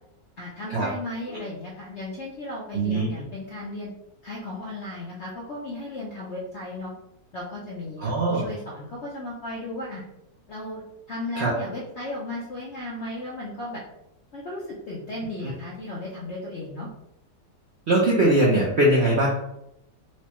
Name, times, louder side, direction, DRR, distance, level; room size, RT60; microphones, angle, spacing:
voice 1, 0.4-3.9 4.2-6.9 7.3-10.0 10.5-10.8 11.1-13.8 14.3-16.9, left 1 dB, 65° left, -5 dB, 0.7 m, -35 dB
voice 2, 2.7-3.1 8.0-8.4 11.4-11.5 15.4-15.5 17.9-19.3, right 1 dB, 65° right, -5 dB, 0.6 m, -21 dB
4.5 x 2.1 x 2.9 m, 0.83 s
omnidirectional pair, 1.9 m